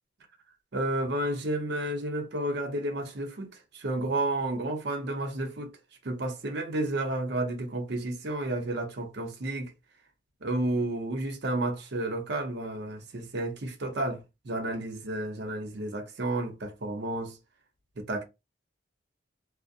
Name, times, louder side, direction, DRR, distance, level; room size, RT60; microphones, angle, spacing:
voice 1, 0.7-5.8 6.0-9.7 10.4-17.3 18.0-18.2, right 1 dB, 65° right, 0.6 m, -31 dB
2.4 x 2.0 x 2.6 m
head